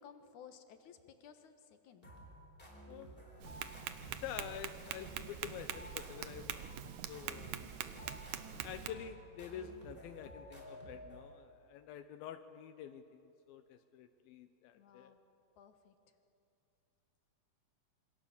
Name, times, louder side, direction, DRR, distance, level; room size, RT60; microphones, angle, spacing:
voice 1, 0.0-2.1 14.7-15.2 15.6-16.2, left 7 dB, 65° left, 7 dB, 2.6 m, -57 dB
sound 1, 2.0-11.5, equal, 15° left, 4.2 m, -53 dB
voice 2, 2.9-3.2 4.1-6.7 7.1-7.8 8.6-15.1, left 9 dB, 85° left, 8 dB, 2.7 m, -48 dB
Tap, 3.4-8.9, right 11 dB, 70° right, 2.0 m, -44 dB
27.0 x 24.5 x 7.3 m, 2.7 s
omnidirectional pair, 4.1 m